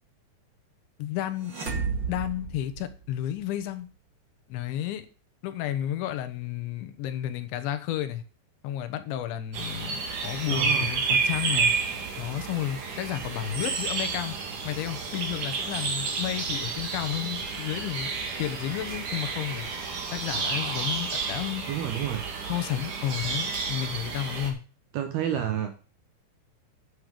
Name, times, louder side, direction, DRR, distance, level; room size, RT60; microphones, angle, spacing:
voice 1, 1.0-1.5 2.1-3.9 4.5-5.1 5.4-8.2 8.6-11.7 12.2-14.4 14.6-18.1 18.4-19.7 20.1-21.6 22.5-24.6, left 12 dB, 75° left, 10 dB, 3.2 m, -32 dB
sound 1, 1.4-3.4, right 5 dB, 90° right, 1.0 m, -33 dB
sound 2, 9.5-24.5, right 5 dB, 50° right, 3.0 m, -30 dB
voice 2, 10.5-10.9 21.7-22.2 24.9-25.7, right 10 dB, 70° right, 7 dB, 2.5 m, -29 dB
10.5 x 7.8 x 5.1 m, 0.37 s
omnidirectional pair, 5.6 m